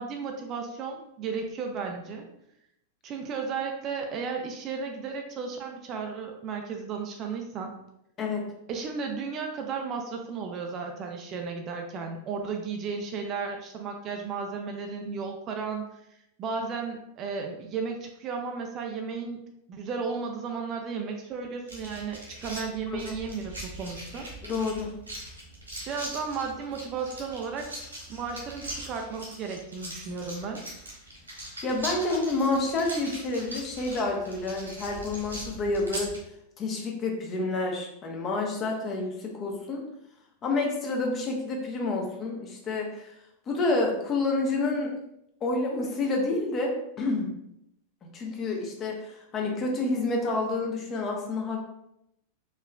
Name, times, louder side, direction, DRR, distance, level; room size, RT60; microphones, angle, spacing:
voice 1, 0.0-2.2 3.0-7.8 8.7-15.9 16.4-19.4 19.7-24.3 25.9-27.7 28.1-30.6, right 5 dB, 35° right, 3 dB, 0.5 m, -34 dB
sound 1, 21.7-36.2, right 1 dB, 80° right, 1.5 m, -41 dB
voice 2, 24.4-24.9 31.6-36.1 36.6-39.8 40.4-43.1 43.5-44.9 45.4-47.3 48.1-51.6, left 2 dB, 30° left, 0 dB, 0.9 m, -29 dB
4.7 x 3.2 x 2.3 m, 0.79 s
figure-of-eight pair, 90°, 0 cm